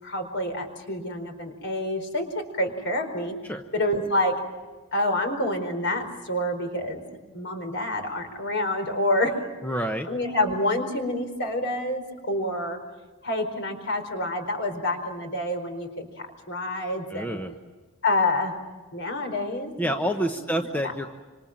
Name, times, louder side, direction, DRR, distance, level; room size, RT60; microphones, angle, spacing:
voice 1, 0.0-3.3 3.7-4.3 4.9-7.0 7.3-9.4 10.1-12.8 13.2-17.4 18.0-18.5 18.9-19.9 20.4-20.5, left 1 dB, 50° left, 6 dB, 4.4 m, -27 dB
voice 2, 9.6-10.1 17.1-17.5 19.8-21.1, right 1 dB, 10° left, 4 dB, 1.0 m, -28 dB
26.5 x 26.0 x 7.5 m, 1.3 s
head